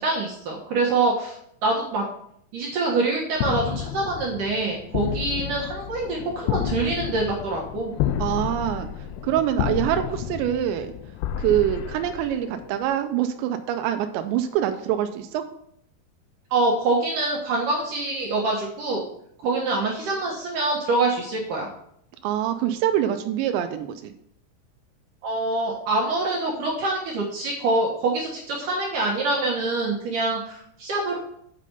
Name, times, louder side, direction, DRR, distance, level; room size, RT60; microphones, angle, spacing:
voice 1, 0.0-1.4 1.6-2.1 2.5-7.9 16.5-19.0 19.4-21.7 25.2-31.2, right 2 dB, 65° right, -3 dB, 2.3 m, -25 dB
sound 1, 3.4-12.9, left 10 dB, 80° left, 2.5 m, -30 dB
voice 2, 8.2-8.9 9.2-10.9 11.4-15.5 19.4-19.6 22.2-24.1, right 11 dB, 85° right, 7 dB, 2.9 m, -25 dB
8.6 x 5.0 x 5.3 m, 0.70 s
omnidirectional pair, 5.1 m